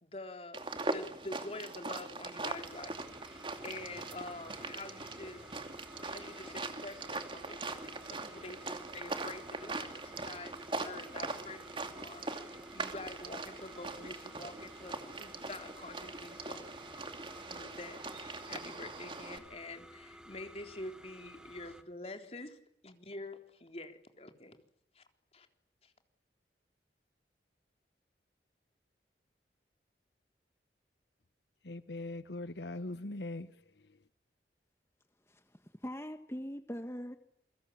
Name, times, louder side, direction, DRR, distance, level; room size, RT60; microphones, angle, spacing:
voice 1, 0.0-5.4 6.0-16.7 17.5-22.6 22.8-24.6 24.9-25.0 25.3-25.5 25.8-25.9, left 2 dB, 35° left, 6 dB, 3.7 m, -47 dB
sound 1, 0.5-19.4, right 3 dB, 30° right, 2.6 m, -41 dB
sound 2, 2.4-21.8, equal, 5° right, 2.2 m, -54 dB
voice 2, 31.6-34.0, left 2 dB, 75° left, 13 dB, 1.1 m, -41 dB
voice 3, 35.3-37.2, equal, 15° left, 8 dB, 1.3 m, -42 dB
28.5 x 23.5 x 8.6 m, 0.74 s
head